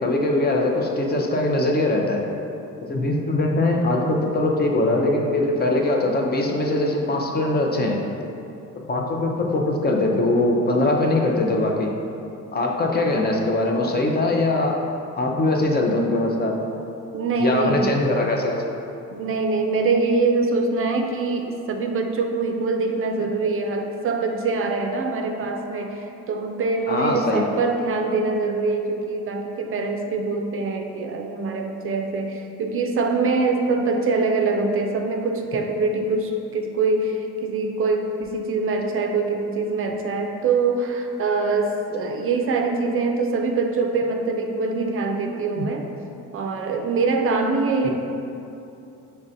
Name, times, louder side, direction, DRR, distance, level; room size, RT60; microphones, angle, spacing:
voice 1, 0.0-2.2 2.9-8.0 8.9-11.9 12.5-14.8 15.2-16.6 17.4-18.6 26.9-27.5 45.6-45.7 47.8-47.9, left 2 dB, 30° left, 0 dB, 0.5 m, -21 dB
voice 2, 17.1-18.0 19.1-45.9 46.3-47.9, right 3 dB, 45° right, 3 dB, 0.4 m, -24 dB
5.3 x 3.3 x 2.6 m, 2.7 s
cardioid pair, 90°, 30 cm